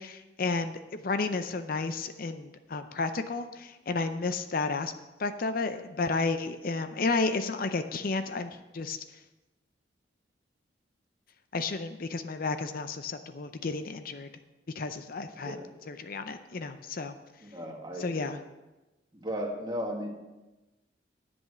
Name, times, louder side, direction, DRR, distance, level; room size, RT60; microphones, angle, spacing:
voice 1, 0.0-4.9 5.2-9.0 11.5-14.3 14.8-15.6 15.9-17.1 18.0-18.4, left 3 dB, 55° left, 9 dB, 0.6 m, -32 dB
voice 2, 17.4-18.4 19.1-20.1, equal, 25° right, 1 dB, 1.7 m, -36 dB
10.5 x 8.0 x 6.1 m, 1.1 s
head